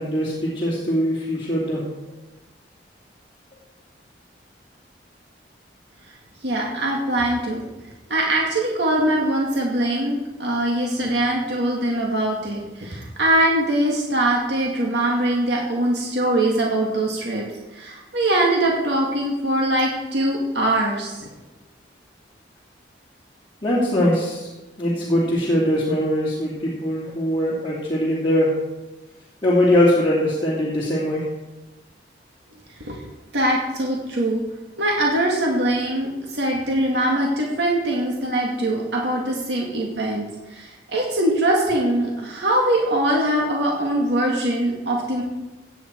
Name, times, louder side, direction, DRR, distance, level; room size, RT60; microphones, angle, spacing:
voice 1, 0.0-1.8 23.6-24.5 24.8-28.5 29.4-31.2, left 1 dB, 25° left, -8 dB, 2.6 m, -21 dB
voice 2, 6.4-7.6 8.1-17.4 17.7-21.3 32.8-33.0 33.3-34.4 34.8-45.2, right 1 dB, 70° right, -2 dB, 2.1 m, -22 dB
16.5 x 9.1 x 4.5 m, 1.1 s
head